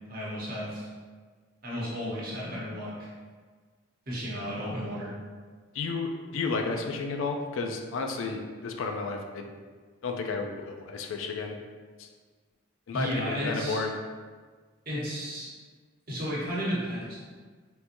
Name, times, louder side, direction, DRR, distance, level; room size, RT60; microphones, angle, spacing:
voice 1, 0.1-0.9 1.6-3.1 4.1-5.1 12.9-13.8 14.9-15.5 16.1-17.2, equal, 45° right, -7 dB, 0.9 m, -33 dB
voice 2, 5.7-9.5 10.0-11.5 12.0-12.1 12.9-13.9, left 4 dB, 75° left, 3 dB, 0.4 m, -32 dB
3.6 x 2.8 x 2.5 m, 1.5 s
head